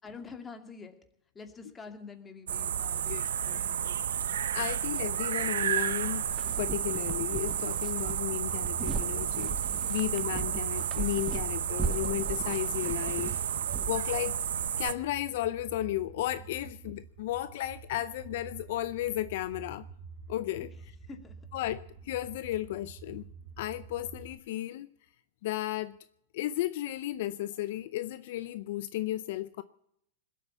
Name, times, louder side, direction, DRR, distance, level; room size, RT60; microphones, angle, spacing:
voice 1, 0.0-0.9 1.3-3.1 3.4-4.2 21.1-21.4, left 4 dB, 20° left, 2.5 m, -46 dB
sound 1, 2.5-14.9, right 9 dB, 85° right, 0.7 m, -32 dB
voice 2, 3.1-3.6 4.5-6.3 6.6-9.6 9.9-13.3 13.9-14.4 14.8-19.9 20.3-20.7 21.5-23.3 23.6-24.9 25.4-26.0 26.3-29.6, left 14 dB, 65° left, 0.6 m, -34 dB
sound 2, 6.3-14.2, right 6 dB, 25° right, 1.0 m, -38 dB
sound 3, 10.0-24.3, right 5 dB, 45° right, 2.2 m, -49 dB
20.5 x 8.4 x 8.2 m
hypercardioid pair, 115°, 0 cm